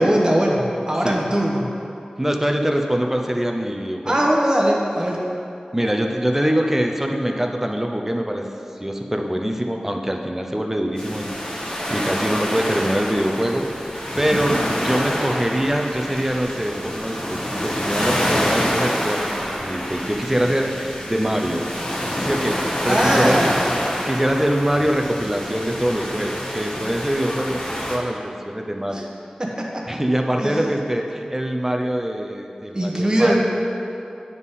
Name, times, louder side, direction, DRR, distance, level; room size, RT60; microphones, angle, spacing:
voice 1, 0.0-1.7 4.0-5.2 22.9-23.6 28.9-29.0 29.4-29.8 30.4-30.6 32.7-33.4, right 1 dB, 30° right, -2 dB, 1.0 m, -20 dB
voice 2, 2.2-4.3 5.7-8.5 8.8-19.3 19.6-21.7 22.2-23.5 24.1-29.1 29.9-33.4, equal, 15° right, 3 dB, 0.6 m, -24 dB
sound 1, 11.0-28.0, equal, 35° left, 1.2 m, -26 dB
9.3 x 3.7 x 4.1 m, 2.7 s
wide cardioid pair, 55°, 3 cm